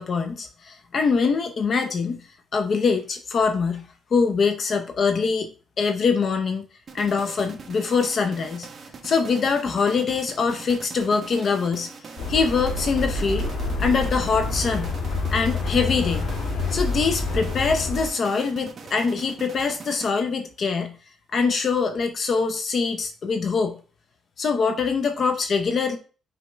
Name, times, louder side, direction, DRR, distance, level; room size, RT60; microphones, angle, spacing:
voice 1, 0.0-2.2 2.5-3.9 4.1-5.5 5.8-6.7 6.9-8.7 9.0-11.9 12.3-13.5 13.8-14.9 15.3-16.3 16.7-21.0 21.3-23.8 24.4-26.0, left 5 dB, 45° left, 7 dB, 0.7 m, -23 dB
sound 1, 6.9-20.5, right 4 dB, 40° right, 1.2 m, -42 dB
sound 2, 12.2-18.1, left 3 dB, 90° left, 2.9 m, -27 dB
6.2 x 5.1 x 3.4 m, 0.37 s
cardioid pair, 125°, 0 cm